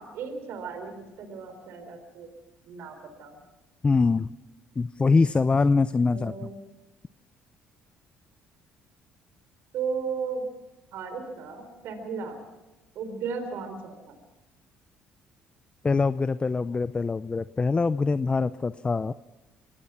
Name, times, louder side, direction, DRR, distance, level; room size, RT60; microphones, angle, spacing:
voice 1, 0.0-2.3 2.6-3.4 6.1-6.6 9.7-10.4 10.9-12.4 12.9-14.2, right 5 dB, 70° right, 7 dB, 4.1 m, -35 dB
voice 2, 3.8-4.3 4.8-6.5 15.8-19.1, left 4 dB, 25° left, 15 dB, 0.6 m, -24 dB
24.5 x 17.5 x 5.9 m, 1.1 s
supercardioid pair, 70°, 4 cm